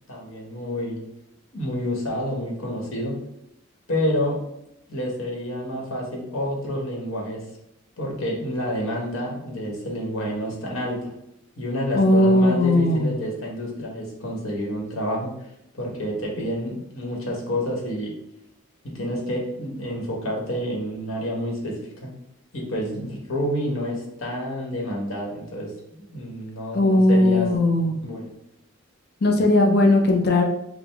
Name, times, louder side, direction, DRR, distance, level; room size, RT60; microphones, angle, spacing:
voice 1, 0.1-1.0 1.5-3.2 3.9-4.4 4.9-7.4 8.0-11.1 11.6-15.3 15.8-18.1 18.8-22.1 22.5-25.7 26.1-27.5 28.0-28.3, equal, 75° left, -2 dB, 1.2 m, -29 dB
voice 2, 11.9-13.1 26.7-28.0 29.2-30.4, left 1 dB, 50° left, 1 dB, 0.6 m, -18 dB
5.0 x 2.0 x 3.4 m, 0.80 s
head